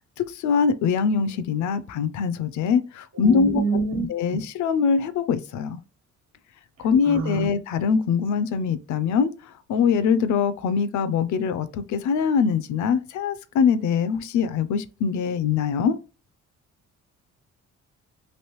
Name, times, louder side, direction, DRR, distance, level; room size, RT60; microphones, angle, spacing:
voice 1, 0.2-3.6 4.1-5.8 6.8-9.3 9.7-16.0, left 6 dB, 70° left, 0.5 m, -23 dB
voice 2, 3.2-4.0 7.0-7.5, right 2 dB, 60° right, 1.1 m, -25 dB
3.2 x 2.6 x 3.0 m
cardioid pair, 90°, 30 cm